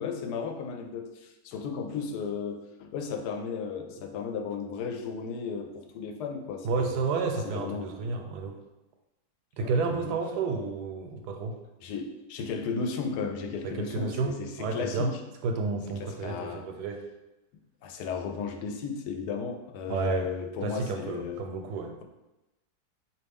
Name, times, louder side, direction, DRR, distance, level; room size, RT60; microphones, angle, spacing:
voice 1, 0.0-7.0 7.4-8.1 9.6-10.1 11.8-15.2 16.0-16.7 17.8-21.4, left 5 dB, 90° left, 5 dB, 1.2 m, -35 dB
voice 2, 6.6-8.6 9.5-11.6 13.6-15.1 15.4-17.0 19.9-20.3 20.6-21.9, right 4 dB, 85° right, 4 dB, 1.1 m, -31 dB
4.3 x 2.8 x 3.5 m, 0.99 s
omnidirectional pair, 1.7 m